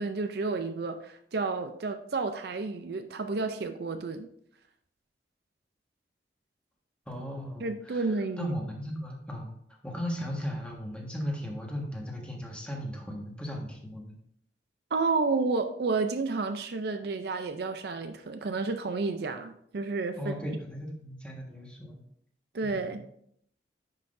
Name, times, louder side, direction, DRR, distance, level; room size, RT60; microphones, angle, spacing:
voice 1, 0.0-4.3 7.6-8.5 14.9-20.3 22.5-23.0, right 3 dB, 60° right, 0.5 m, -31 dB
voice 2, 7.1-9.5 9.8-14.2 20.2-22.0 22.7-23.0, equal, 5° left, 1.5 m, -37 dB
10.0 x 5.8 x 2.6 m
head